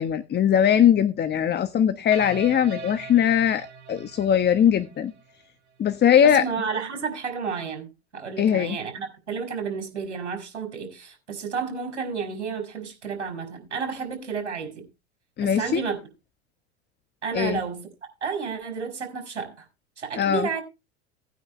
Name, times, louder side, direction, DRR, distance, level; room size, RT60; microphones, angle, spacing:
voice 1, 0.0-5.1 5.8-6.4 8.4-8.8 15.4-15.8 17.3-17.6 20.2-20.5, left 9 dB, 30° left, 1.2 m, -20 dB
sound 1, 2.1-5.4, right 5 dB, 65° right, 5.6 m, -41 dB
voice 2, 6.2-7.9 8.1-14.8 15.4-16.0 17.2-19.6 20.0-20.6, right 5 dB, 85° right, 4.9 m, -31 dB
18.0 x 9.4 x 3.2 m
hypercardioid pair, 90°, 34 cm